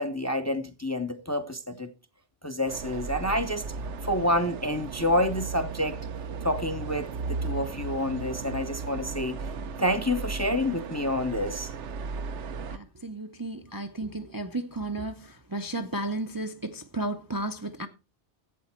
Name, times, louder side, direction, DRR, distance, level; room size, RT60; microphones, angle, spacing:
voice 1, 0.0-1.9 2.4-3.6 4.0-6.0 6.4-9.4 9.8-11.7, left 1 dB, 15° left, 0.7 m, -28 dB
sound 1, 2.7-12.8, right 4 dB, 75° right, 1.1 m, -36 dB
voice 2, 12.7-17.9, right 2 dB, 20° right, 0.6 m, -33 dB
12.0 x 8.4 x 4.4 m
omnidirectional pair, 1.2 m